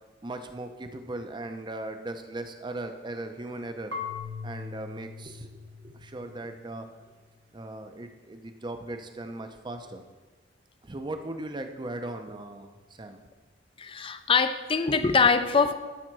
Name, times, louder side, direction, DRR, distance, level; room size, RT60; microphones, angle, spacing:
voice 1, 0.2-3.9 4.4-6.9 7.5-10.0 10.8-13.2, right 2 dB, 25° right, 7 dB, 0.6 m, -38 dB
Marimba xylophone / Wood, 3.9-6.8, left 5 dB, 75° right, 1.2 m, -40 dB
voice 2, 13.8-15.7, left 5 dB, 30° left, 11 dB, 0.5 m, -23 dB
12.5 x 4.3 x 6.1 m, 1.3 s
head